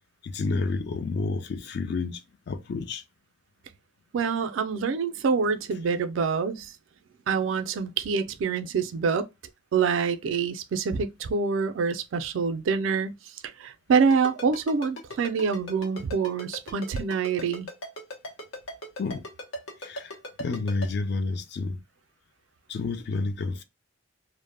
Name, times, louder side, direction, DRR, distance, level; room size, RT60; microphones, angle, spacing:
voice 1, 0.2-3.0 19.0-19.2 19.8-21.8 22.7-23.6, left 3 dB, 60° left, 0.4 m, -30 dB
voice 2, 4.1-6.7 7.3-9.3 9.7-13.2 13.6-17.7, right 5 dB, 85° right, 0.4 m, -26 dB
Ringtone, 14.1-20.9, left 1 dB, 90° left, 0.8 m, -37 dB
2.1 x 2.0 x 3.2 m
head